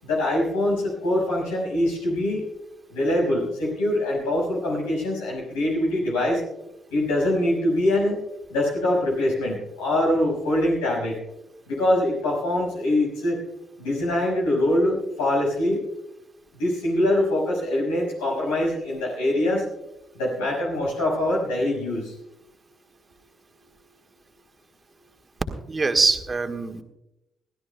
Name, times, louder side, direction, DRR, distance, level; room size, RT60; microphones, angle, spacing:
voice 1, 0.0-2.4 2.9-6.4 6.9-8.2 8.5-11.2 11.7-13.4 13.8-15.8 16.6-19.7 20.1-22.1, left 1 dB, 85° left, -3 dB, 5.6 m, -23 dB
voice 2, 25.7-26.8, right 4 dB, 35° right, 5 dB, 1.7 m, -23 dB
22.5 x 16.0 x 2.3 m, 0.88 s
hypercardioid pair, 40°, 0 cm